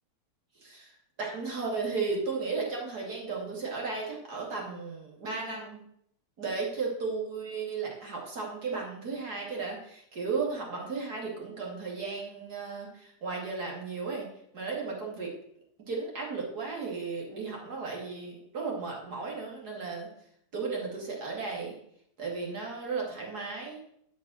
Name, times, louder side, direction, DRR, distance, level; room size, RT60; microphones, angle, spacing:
voice 1, 0.6-0.9 1.2-5.8 6.4-14.3 14.5-15.3 15.9-20.1 20.5-21.8 22.2-23.8, right 4 dB, 90° right, -2 dB, 3.1 m, -35 dB
11.5 x 6.1 x 6.4 m, 0.72 s
omnidirectional pair, 1.6 m